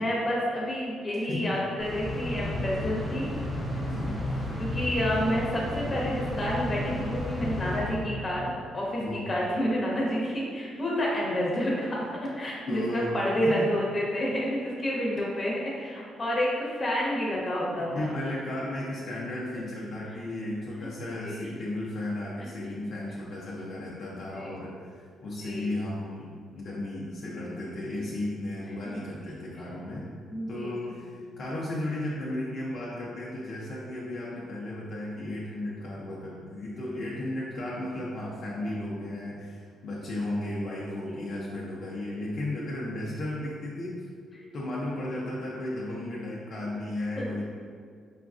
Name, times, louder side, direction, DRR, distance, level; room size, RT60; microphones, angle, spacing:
voice 1, 0.0-3.3 4.6-18.1 21.2-21.4 24.3-24.6 25.4-25.7 28.9-29.3 30.3-31.0 37.7-38.0 41.0-41.2 47.2-47.3, equal, 30° left, -4 dB, 1.0 m, -29 dB
voice 2, 1.3-1.6 3.8-4.5 9.0-9.4 12.7-13.7 17.8-26.3 26.6-30.1 30.5-44.0 44.5-47.4, left 1 dB, 60° left, -6 dB, 0.6 m, -34 dB
sound 1, 1.8-8.6, left 1 dB, ahead, 0.8 m, -32 dB
5.0 x 2.3 x 2.5 m, 2.1 s
cardioid pair, 90°, 0 cm